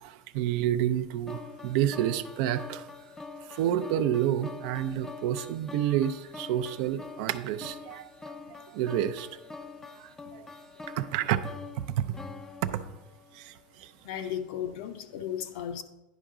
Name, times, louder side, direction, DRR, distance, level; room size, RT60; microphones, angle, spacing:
voice 1, 0.0-2.8 3.5-8.1 8.5-9.3 10.0-10.5 10.9-11.4 11.9-12.1 12.6-12.8 13.3-13.9, right 11 dB, 60° right, 12 dB, 0.4 m, -29 dB
sound 1, 1.3-13.5, left 3 dB, 10° left, 0.4 m, -45 dB
voice 2, 14.0-15.8, left 9 dB, 65° left, 8 dB, 0.7 m, -35 dB
10.5 x 4.6 x 3.7 m, 0.99 s
supercardioid pair, 140°, 5 cm